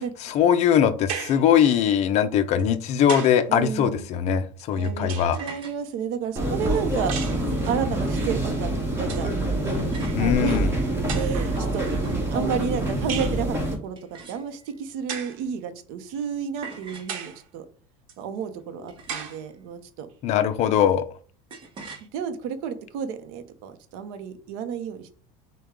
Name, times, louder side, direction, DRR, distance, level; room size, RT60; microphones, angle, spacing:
voice 1, 0.2-5.4 10.1-10.7 20.2-21.1, left 9 dB, 40° left, 12 dB, 0.5 m, -21 dB
sound 1, 1.1-1.5 2.6-3.5 4.6-5.5 7.1-7.5 8.6-8.7 9.0-9.4 10.3-10.4 11.1-11.6 13.1-13.4 15.1-15.4 16.1-16.2 17.1-17.4 18.1-18.2 19.1-19.4, right 7 dB, 85° right, 1.0 m, -35 dB
voice 2, 3.5-4.1 4.7-5.1 5.4-7.2 7.6-9.3 10.2-10.8 11.1-12.0 12.3-13.6 13.8-17.6 18.2-20.1 22.0-25.1, right 7 dB, 60° right, 9 dB, 0.7 m, -31 dB
sound 2, 5.3-5.8 7.3-7.9 9.9-10.3 11.4-12.4 14.0-14.8 16.6-17.2 18.9-19.5 21.5-22.1, right 4 dB, 30° right, 1.0 m, -43 dB
sound 3, 6.4-13.8, right 1 dB, 15° right, 1.3 m, -26 dB
6.4 x 2.3 x 3.6 m, 0.44 s
supercardioid pair, 140°, 17 cm